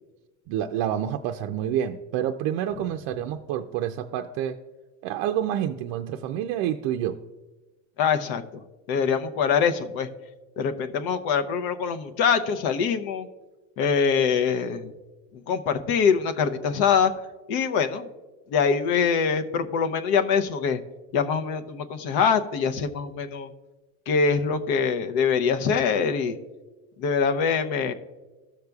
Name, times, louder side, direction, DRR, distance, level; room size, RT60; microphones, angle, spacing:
voice 1, 0.5-4.6 5.0-7.2, right 10 dB, 55° right, 5 dB, 0.5 m, -28 dB
voice 2, 8.0-8.4 8.9-10.1 10.6-13.3 13.8-14.9 15.3-17.1 17.5-18.1 18.5-20.8 21.1-23.5 24.1-26.4 27.0-27.9, left 6 dB, 60° left, 8 dB, 0.8 m, -24 dB
14.5 x 6.5 x 2.3 m, 1.2 s
supercardioid pair, 120°, 42 cm